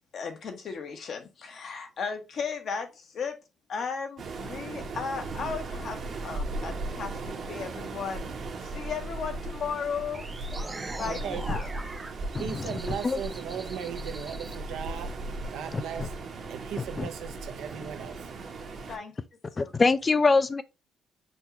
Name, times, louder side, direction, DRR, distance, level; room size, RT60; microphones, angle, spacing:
voice 1, 0.1-3.4 3.7-8.3 8.6-10.3 10.7-11.7 18.9-19.1 19.5-19.7, left 5 dB, 60° left, 1.0 m, -35 dB
Waves surf, 4.2-19.0, right 2 dB, 55° right, 1.0 m, -37 dB
sound 1, 10.1-14.6, right 2 dB, 20° right, 0.5 m, -42 dB
voice 2, 11.0-11.5 12.4-15.1 15.5-16.1 16.5-18.3, right 8 dB, 85° right, 0.6 m, -37 dB
voice 3, 15.7-16.1 17.0-17.1 19.6-20.6, left 4 dB, 30° left, 0.4 m, -24 dB
6.1 x 2.3 x 2.8 m
cardioid pair, 90°, 0 cm